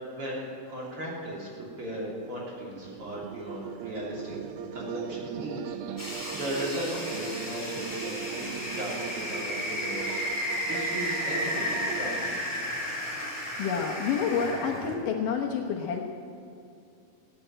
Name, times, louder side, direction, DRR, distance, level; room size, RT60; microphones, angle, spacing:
voice 1, 0.1-1.5 1.8-4.4 4.7-12.4, equal, 40° right, -5 dB, 3.9 m, -37 dB
sound 1, 2.8-12.3, right 8 dB, 90° right, 2.6 m, -39 dB
sound 2, 6.0-14.9, equal, 5° left, 3.3 m, -33 dB
voice 2, 13.6-16.1, left 6 dB, 70° left, 0 dB, 2.5 m, -29 dB
17.5 x 9.1 x 8.8 m, 2.6 s
omnidirectional pair, 4.3 m